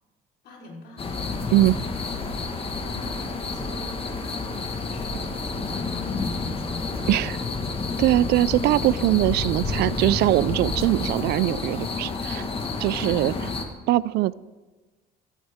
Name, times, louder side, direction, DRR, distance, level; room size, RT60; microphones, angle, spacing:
voice 1, 0.4-1.2 1.6-1.9 2.8-3.1 3.5-4.0 4.5-7.3, left 2 dB, 75° left, -2 dB, 4.1 m, -44 dB
sound 1, 1.0-13.6, left 3 dB, 35° left, 1.6 m, -29 dB
Telephone, 3.1-11.1, equal, 20° right, 3.7 m, -48 dB
voice 2, 8.0-12.5 12.8-13.5 13.9-14.3, right 16 dB, 75° right, 20 dB, 0.4 m, -22 dB
15.0 x 14.5 x 3.6 m, 1.2 s
cardioid pair, 110°, 17 cm